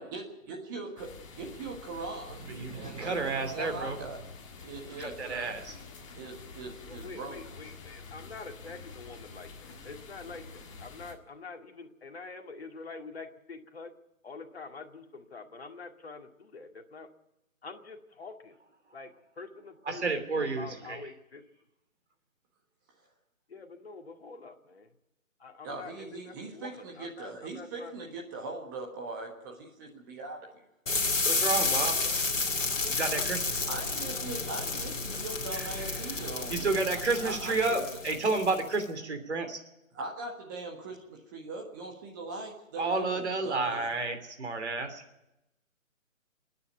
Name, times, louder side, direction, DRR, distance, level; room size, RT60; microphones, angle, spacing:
voice 1, 0.0-2.4 2.7-3.2 3.4-4.2 4.6-5.5 6.1-7.4 25.6-30.6 33.7-36.8 37.2-37.8 39.9-43.9, right 3 dB, 15° right, 0 dB, 1.5 m, -41 dB
sound 1, 1.0-11.1, left 4 dB, 25° left, 1.8 m, -48 dB
voice 2, 2.5-4.0 5.0-5.7 19.9-21.0 31.3-32.0 32.9-33.5 35.5-35.7 36.5-39.6 42.8-45.0, right 3 dB, 55° right, 6 dB, 3.1 m, -31 dB
voice 3, 6.8-13.9 14.2-17.1 17.6-18.5 18.9-20.0 20.6-21.4 23.5-24.9 25.4-27.9 31.5-32.2 32.7-33.2 34.2-34.4, left 4 dB, 50° left, 4 dB, 2.2 m, -46 dB
sound 2, 30.9-38.8, left 3 dB, 65° left, 2.5 m, -31 dB
29.5 x 9.8 x 9.1 m, 0.91 s
figure-of-eight pair, 145°, 41 cm